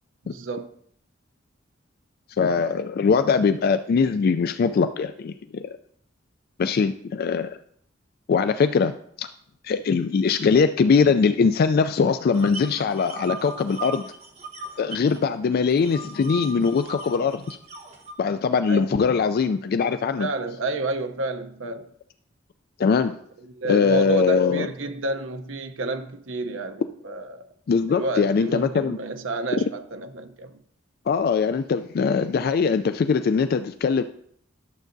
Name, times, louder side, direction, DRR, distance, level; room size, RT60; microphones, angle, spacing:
voice 1, 0.2-0.7 18.7-18.9 20.2-21.9 23.4-27.5 27.9-30.5, right 3 dB, 80° right, 0.7 m, -30 dB
voice 2, 2.4-5.6 6.6-7.6 8.3-9.3 9.6-14.0 14.8-17.6 18.2-20.3 22.8-23.2 23.6-24.7 27.7-29.0 31.1-34.0, left 5 dB, 50° left, 0.3 m, -21 dB
sound 1, 12.3-15.2 15.5-18.1, right 3 dB, 35° right, 1.0 m, -38 dB
11.5 x 7.2 x 2.6 m
head